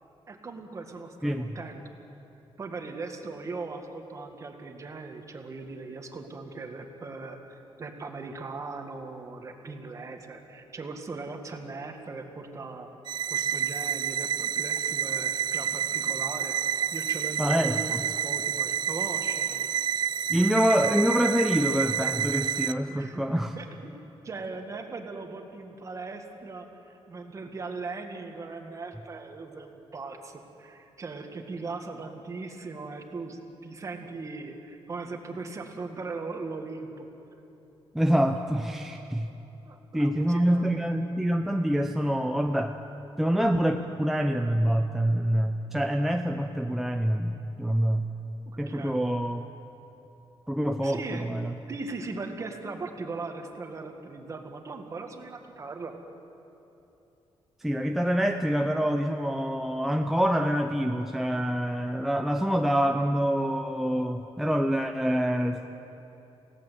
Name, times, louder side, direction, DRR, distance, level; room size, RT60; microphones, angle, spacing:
voice 1, 0.3-1.8 2.6-12.9 13.3-19.7 22.9-23.2 23.6-23.9 24.2-37.1 39.6-40.8 48.5-49.0 50.8-51.3 51.7-56.0, right 3 dB, 30° right, 4 dB, 2.0 m, -39 dB
voice 2, 1.2-1.6 17.4-18.0 20.3-23.5 37.9-39.3 39.9-42.8 43.2-48.1 48.6-49.4 50.5-51.5 57.6-65.7, equal, 5° right, 4 dB, 0.7 m, -26 dB
sound 1, 13.1-22.7, right 9 dB, 50° right, 0.5 m, -29 dB
28.5 x 17.5 x 8.4 m, 2.9 s
wide cardioid pair, 165°, 10 cm